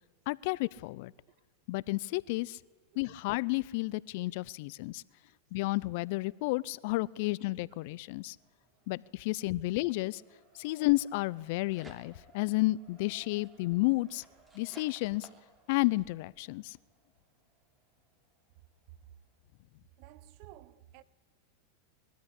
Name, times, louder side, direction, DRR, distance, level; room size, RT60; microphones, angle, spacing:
voice 1, 0.3-1.1 1.7-2.6 3.0-5.0 5.5-8.4 8.9-10.2 10.6-14.2 14.5-15.3 15.7-16.8, left 21 dB, 60° left, 0.5 m, -31 dB
Race car auto racing, 7.1-19.6, right 4 dB, 30° right, 6.7 m, -66 dB
sound 1, 11.2-12.4 12.9-16.1, right 2 dB, 10° right, 3.0 m, -58 dB
voice 2, 20.0-21.0, right 13 dB, 55° right, 0.9 m, -53 dB
22.0 x 13.5 x 10.0 m
hypercardioid pair, 120°, 0 cm